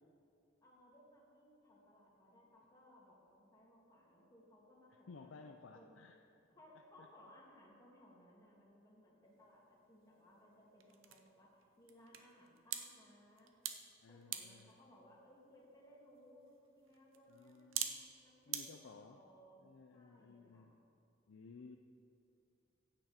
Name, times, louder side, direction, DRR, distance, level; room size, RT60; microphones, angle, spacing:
voice 1, 0.6-5.9 6.5-13.5 14.1-20.7, equal, 20° left, -4 dB, 2.2 m, -63 dB
voice 2, 4.9-6.2 7.0-7.1 14.0-14.8 17.3-18.1 18.5-19.2 19.6-20.7 21.3-21.8, left 4 dB, 70° left, 5 dB, 0.5 m, -57 dB
sound 1, 9.3-18.6, right 9 dB, 80° right, 0.8 m, -48 dB
15.0 x 8.9 x 4.3 m, 2.6 s
head